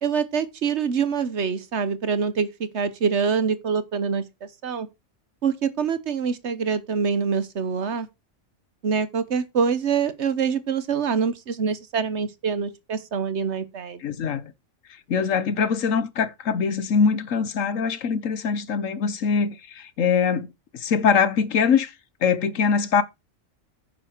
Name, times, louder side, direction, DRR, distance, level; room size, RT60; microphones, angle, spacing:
voice 1, 0.0-4.9 5.4-8.1 8.8-14.2, right 6 dB, 65° right, 1.3 m, -25 dB
voice 2, 14.0-14.5 15.1-20.5 20.7-21.9 22.2-23.0, left 6 dB, 90° left, 1.4 m, -23 dB
9.9 x 6.8 x 4.5 m
omnidirectional pair, 1.3 m